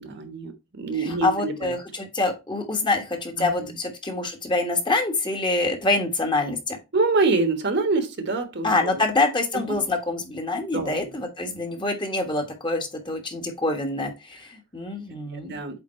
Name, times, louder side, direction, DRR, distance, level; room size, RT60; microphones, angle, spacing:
voice 1, 0.0-1.7 3.4-3.5 6.9-9.0 9.5-9.8 10.7-11.0 15.3-15.8, right 3 dB, 55° right, 1.3 m, -26 dB
voice 2, 0.9-6.8 8.6-15.6, left 2 dB, 25° left, 1.3 m, -26 dB
8.3 x 3.6 x 4.2 m
head